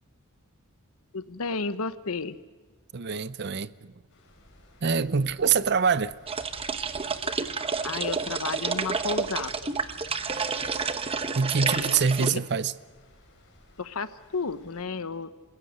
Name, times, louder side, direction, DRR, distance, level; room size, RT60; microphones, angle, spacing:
voice 1, 1.1-2.4 7.8-9.5 11.6-12.4 13.8-15.4, left 4 dB, 75° left, 1.0 m, -32 dB
voice 2, 2.9-3.9 4.8-6.1 11.3-12.7, right 6 dB, 50° right, 0.6 m, -25 dB
Stream, 4.1-14.8, left 1 dB, 55° left, 5.0 m, -57 dB
sound 1, 6.3-12.3, right 5 dB, 25° right, 0.9 m, -30 dB
28.5 x 16.5 x 6.6 m
head